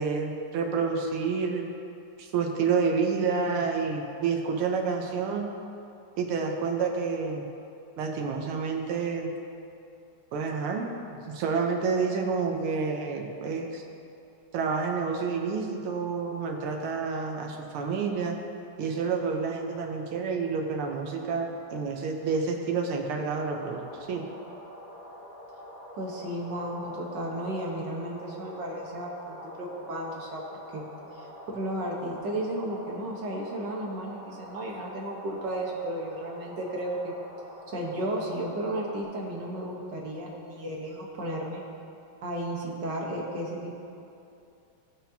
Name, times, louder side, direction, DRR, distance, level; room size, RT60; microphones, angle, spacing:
voice 1, 0.0-1.7 2.2-5.5 6.2-7.5 8.0-9.3 10.3-10.9 11.3-13.8 14.5-18.4 18.8-24.2, right 5 dB, 85° right, 2 dB, 1.8 m, -29 dB
sound 1, 23.3-39.0, equal, 15° left, 2.1 m, -46 dB
voice 2, 25.9-30.8 31.1-31.3 31.5-37.1 37.7-41.6 42.2-43.7, right 1 dB, 60° right, -2 dB, 1.7 m, -34 dB
17.0 x 5.9 x 2.8 m, 2.7 s
omnidirectional pair, 2.3 m